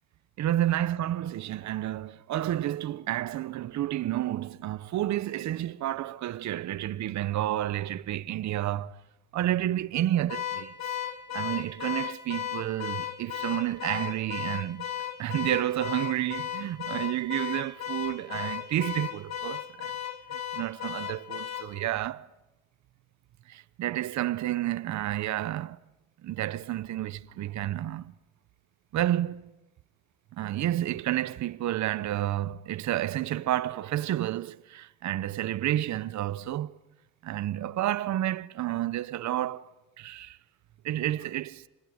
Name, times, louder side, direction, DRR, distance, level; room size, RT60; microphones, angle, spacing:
voice 1, 0.4-9.0 9.3-11.0 11.3-14.9 15.2-19.9 20.3-22.3 23.5-25.8 26.2-28.1 28.9-29.5 30.3-36.7 37.2-39.7 40.0-40.4 40.8-41.7, right 13 dB, 65° right, 0.8 m, -30 dB
Car / Alarm, 10.3-21.7, left 10 dB, 60° left, 2.5 m, -35 dB
26.0 x 20.0 x 9.4 m
cardioid pair, 90°, 30 cm